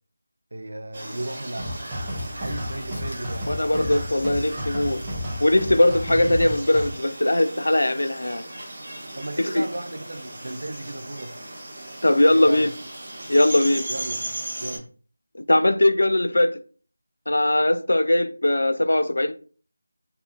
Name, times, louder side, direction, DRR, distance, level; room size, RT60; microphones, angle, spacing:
voice 1, 0.5-1.8 2.4-4.0 9.1-11.3 12.3-12.7 13.9-14.9, right 1 dB, 65° right, 0.5 m, -35 dB
sound 1, 0.9-14.8, right 1 dB, 30° right, 0.9 m, -37 dB
sound 2, 1.6-6.9, equal, 10° right, 0.4 m, -32 dB
Tearing, 1.8-5.5, equal, 55° left, 0.7 m, -45 dB
voice 2, 3.5-5.0 5.4-8.5 9.4-9.6 12.0-12.7 13.3-13.8 15.5-16.6 17.3-19.3, left 1 dB, 85° left, 0.3 m, -20 dB
2.7 x 2.3 x 2.4 m
figure-of-eight pair, 175°, 0 cm